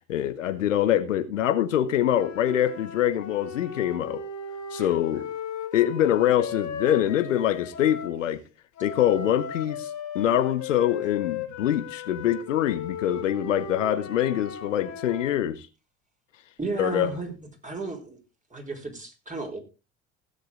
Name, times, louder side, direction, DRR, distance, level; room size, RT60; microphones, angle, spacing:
voice 1, 0.1-4.2 4.7-5.2 5.7-8.4 8.8-9.9 10.1-15.7 16.8-17.1, left 11 dB, 85° left, 1.0 m, -24 dB
sound 1, 2.1-8.2 8.8-15.4, left 6 dB, 50° left, 2.5 m, -37 dB
voice 2, 16.6-17.3 17.6-18.2 18.5-19.6, right 3 dB, 20° right, 4.3 m, -33 dB
16.5 x 7.7 x 3.8 m
hypercardioid pair, 65°, 37 cm